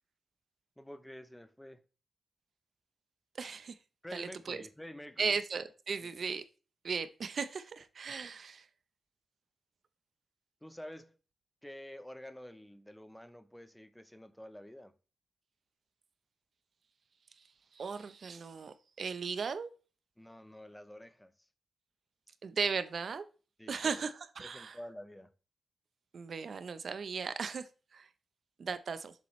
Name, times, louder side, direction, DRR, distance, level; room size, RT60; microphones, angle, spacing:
voice 1, 0.8-1.8 4.0-5.3 6.0-6.1 10.6-11.2 11.6-14.9 20.2-21.3 23.6-24.1 24.4-25.3, left 1 dB, 5° left, 0.6 m, -49 dB
voice 2, 3.3-3.8 4.1-4.6 5.2-6.4 6.8-8.7 17.7-19.7 22.4-23.2 23.7-24.8 26.1-28.1 28.6-29.1, right 5 dB, 55° right, 0.7 m, -37 dB
7.4 x 6.9 x 3.1 m
wide cardioid pair, 130°, 0 cm